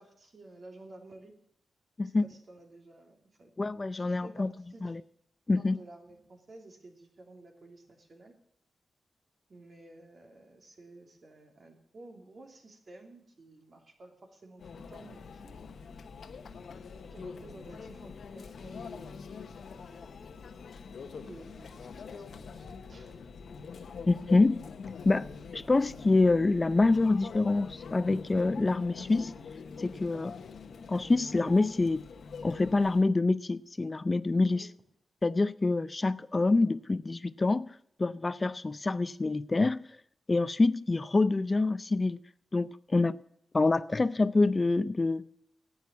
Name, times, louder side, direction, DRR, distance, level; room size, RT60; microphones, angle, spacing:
voice 1, 0.0-1.3 2.0-3.5 4.0-5.0 5.6-8.3 9.5-15.7 17.1-19.3 21.3-23.2 34.5-34.7, right 2 dB, 50° right, 3.0 m, -53 dB
voice 2, 3.6-4.5 4.8-5.0 5.5-5.8 24.1-24.6 25.0-25.3 25.5-29.3 29.8-30.4 30.9-32.0 32.4-34.7 35.2-37.7 38.0-39.8 40.3-42.2 42.5-43.2 43.5-45.3, left 3 dB, 30° left, 0.5 m, -26 dB
Conversation / Chatter / Crowd, 14.6-33.0, left 5 dB, 75° left, 1.0 m, -45 dB
10.5 x 8.7 x 8.3 m
cardioid pair, 85°, 0 cm